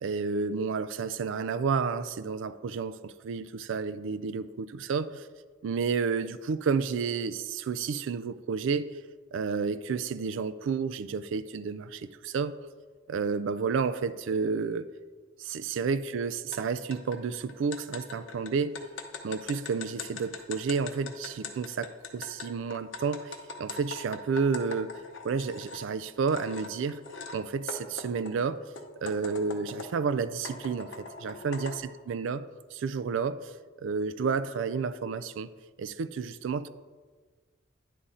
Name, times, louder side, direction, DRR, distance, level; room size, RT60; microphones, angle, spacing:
voice 1, 0.0-5.3 5.6-8.9 9.3-12.6 13.1-14.9 15.4-18.8 19.2-24.9 25.2-27.0 27.3-28.6 29.0-31.8 32.1-33.5 33.8-35.5 35.8-36.7, right 5 dB, 70° right, 0.3 m, -31 dB
sound 1, 16.5-16.6 16.9-25.8 26.3-27.4 27.7-30.0 30.5-31.8, left 4 dB, 65° left, 0.7 m, -42 dB
10.0 x 3.7 x 4.1 m
head